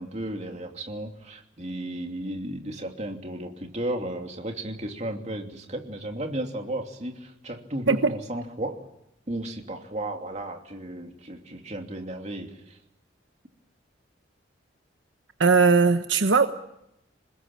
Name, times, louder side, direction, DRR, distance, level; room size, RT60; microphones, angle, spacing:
voice 1, 0.0-8.8 9.3-12.8, right 1 dB, 35° right, 3 dB, 2.9 m, -34 dB
voice 2, 15.4-16.5, right 4 dB, 75° right, 8 dB, 1.2 m, -19 dB
26.5 x 20.5 x 8.9 m, 0.85 s
head